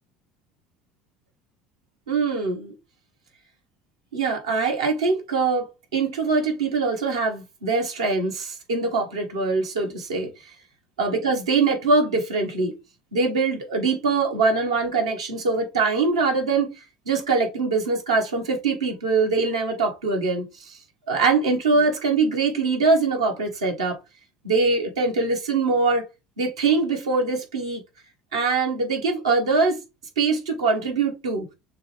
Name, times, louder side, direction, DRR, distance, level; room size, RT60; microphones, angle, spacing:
voice 1, 2.1-2.7 4.1-10.3 11.0-12.7 13.1-16.7 17.1-20.8 21.1-24.0 24.4-26.0 26.4-27.8 28.3-29.8 30.2-31.4, right 4 dB, 85° right, 1.1 m, -23 dB
6.6 x 2.4 x 3.0 m
hypercardioid pair, 65°, 3 cm